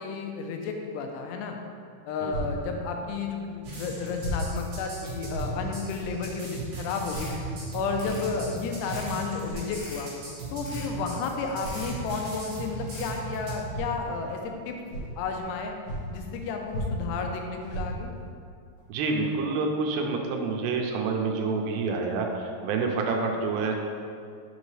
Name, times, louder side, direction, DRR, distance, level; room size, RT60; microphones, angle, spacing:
voice 1, 0.0-1.6 2.1-7.3 7.7-10.1 10.5-14.8 15.2-15.7 16.1-18.1, left 4 dB, 90° left, 3 dB, 2.7 m, -32 dB
sound 1, 2.3-2.5 3.4-3.5 4.2-4.4 4.8-4.9 5.3-5.5 6.0-6.2 7.1-7.3 8.0-8.2 9.3-9.7 10.7-10.8 11.6-11.8 12.9-13.1 13.7-13.9 14.4-14.5 14.9-15.5 15.8-16.4 16.7-17.2 17.6-18.2 18.8-18.9 19.3-19.4, right 1 dB, 55° left, 2.7 m, -35 dB
sound 2, 3.6-13.6, right 2 dB, 60° right, 2.8 m, -38 dB
sound 3, 7.0-7.4 7.8-8.3 8.8-9.2 9.6-10.1 10.6-11.0 11.5-12.0 12.8-13.2, left 2 dB, 75° left, 3.7 m, -43 dB
voice 2, 18.9-23.7, right 4 dB, 85° right, 2 dB, 2.7 m, -28 dB
6.6 x 5.2 x 3.2 m, 2.3 s
omnidirectional pair, 4.8 m